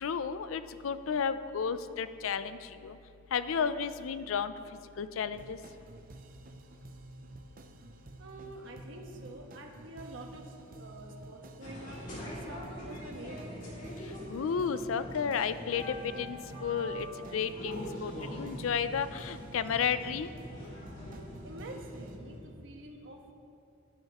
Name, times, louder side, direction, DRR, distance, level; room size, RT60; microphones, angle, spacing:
voice 1, 0.0-2.6 2.8-3.0 3.3-4.5 5.0-5.6 14.3-17.1 17.3-18.1 18.4-20.3, left 6 dB, 80° left, 13 dB, 0.4 m, -32 dB
sound 1, 5.3-22.2, right 2 dB, 45° right, 0.6 m, -51 dB
voice 2, 8.2-12.0 12.3-13.8 21.4-23.3, right 1 dB, 65° right, 1 dB, 1.2 m, -47 dB
sound 2, 11.6-22.4, equal, 40° left, 2.5 m, -43 dB
13.0 x 10.5 x 3.0 m, 2.6 s
head